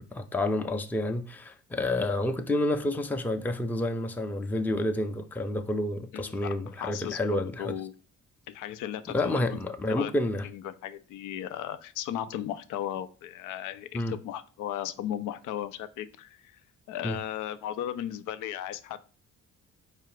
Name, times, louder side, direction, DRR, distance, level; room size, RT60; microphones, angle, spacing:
voice 1, 0.0-7.7 9.1-10.5 13.9-14.1 17.0-17.2, left 1 dB, 5° left, 0.4 m, -29 dB
voice 2, 6.1-7.9 8.5-9.6 9.9-10.1 10.4-16.6 16.9-19.0, left 11 dB, 90° left, 0.5 m, -36 dB
4.7 x 2.5 x 4.6 m
cardioid pair, 90°, 30 cm